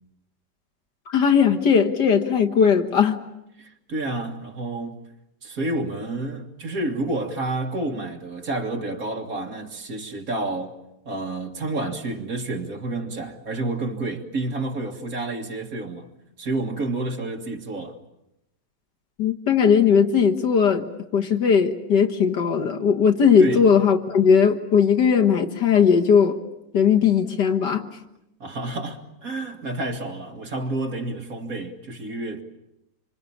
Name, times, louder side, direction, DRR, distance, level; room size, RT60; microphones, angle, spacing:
voice 1, 1.1-3.2 19.2-20.9 21.1-26.4 26.7-27.9, left 6 dB, 70° left, 2.2 m, -18 dB
voice 2, 3.6-5.1 5.4-10.7 11.1-16.1 16.4-18.0 23.4-23.7 28.4-32.4, right 2 dB, 50° right, 2.4 m, -29 dB
26.0 x 25.5 x 8.7 m
omnidirectional pair, 1.9 m